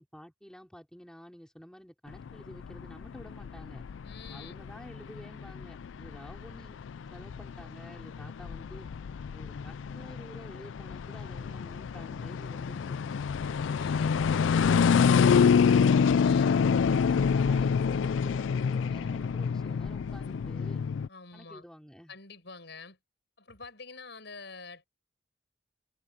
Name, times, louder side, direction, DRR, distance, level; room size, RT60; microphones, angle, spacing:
voice 1, 0.0-3.8 4.3-6.8 7.1-8.9 9.3-13.3 16.5-20.8 21.3-22.1, equal, 5° left, 4.4 m, -50 dB
sound 1, 2.1-21.1, left 6 dB, 90° left, 0.4 m, -27 dB
voice 2, 4.0-4.6 13.4-14.1 16.2-16.6 21.1-21.6 22.1-23.0 23.4-24.9, left 4 dB, 65° left, 7.4 m, -47 dB
head